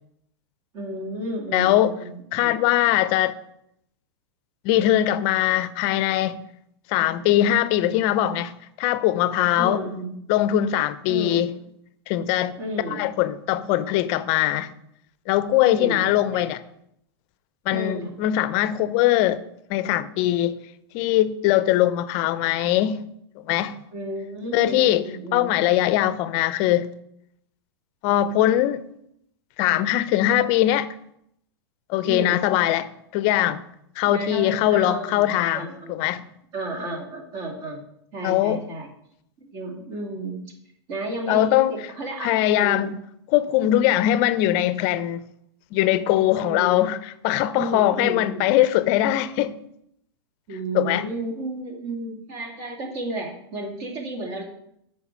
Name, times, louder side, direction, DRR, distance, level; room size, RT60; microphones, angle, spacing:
voice 1, 0.7-2.5 9.6-10.1 11.1-11.5 12.6-13.0 15.6-16.5 17.7-18.2 23.9-25.7 32.0-32.4 34.0-35.3 35.5-36.0 36.5-37.8 38.1-38.9 39.4-40.4 40.9-42.9 43.6-43.9 46.5-47.0 47.5-48.5 50.5-54.4, right 1 dB, 45° right, 2.3 m, -32 dB
voice 2, 1.5-1.9 2.3-3.3 4.6-6.4 6.9-9.8 10.3-11.5 12.1-12.6 12.9-14.7 15.3-16.6 17.7-19.4 19.7-20.6 20.9-23.0 23.4-23.8 24.5-25.0 25.3-26.9 28.0-28.8 29.6-30.9 31.9-33.6 34.0-36.3 38.2-38.6 41.3-41.7 42.2-42.9 43.3-45.2 45.7-49.5 50.7-51.1, left 13 dB, 45° left, 0.5 m, -21 dB
7.2 x 4.6 x 5.7 m
hypercardioid pair, 120°, 14 cm